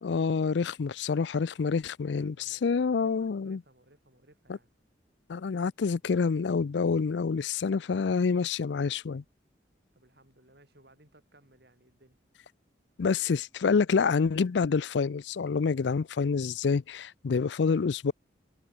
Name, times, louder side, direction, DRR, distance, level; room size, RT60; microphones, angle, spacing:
voice 1, 0.0-3.6 5.3-9.2 13.0-18.1, left 5 dB, 70° left, 0.4 m, -27 dB
voice 2, 2.2-4.7 9.9-12.2, right 1 dB, 60° right, 7.5 m, -61 dB
head